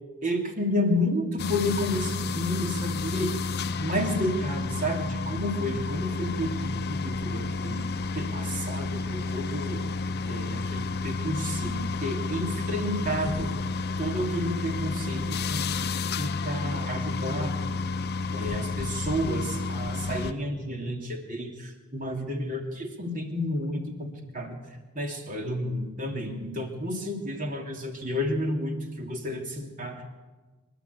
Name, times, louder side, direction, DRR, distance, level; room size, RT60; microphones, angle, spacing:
voice 1, 0.2-3.3 3.8-7.8 8.1-9.8 10.2-13.5 14.0-15.7 16.2-17.6 18.3-24.6 24.9-30.1, left 1 dB, 35° right, 3 dB, 3.1 m, -31 dB
sound 1, 1.4-20.3, left 4 dB, 45° left, 0.8 m, -31 dB
25.5 x 12.5 x 8.3 m, 1.3 s
head